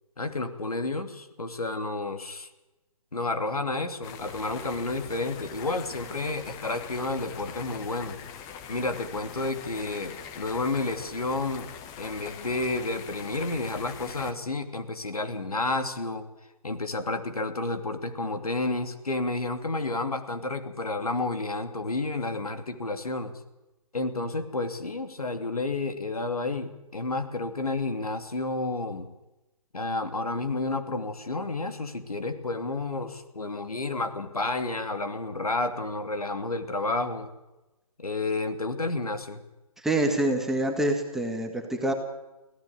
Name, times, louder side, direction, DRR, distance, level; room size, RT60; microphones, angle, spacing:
voice 1, 0.2-2.5 3.1-8.2 8.7-11.7 12.0-16.3 16.6-23.3 23.9-29.1 29.7-37.3 38.0-39.4, left 2 dB, 75° left, 7 dB, 2.8 m, -31 dB
sound 1, 4.0-14.3, left 8 dB, 15° left, 1.2 m, -43 dB
voice 2, 39.8-41.9, right 1 dB, ahead, 3 dB, 1.6 m, -26 dB
24.5 x 16.5 x 8.4 m, 1.0 s
figure-of-eight pair, 140°, 19 cm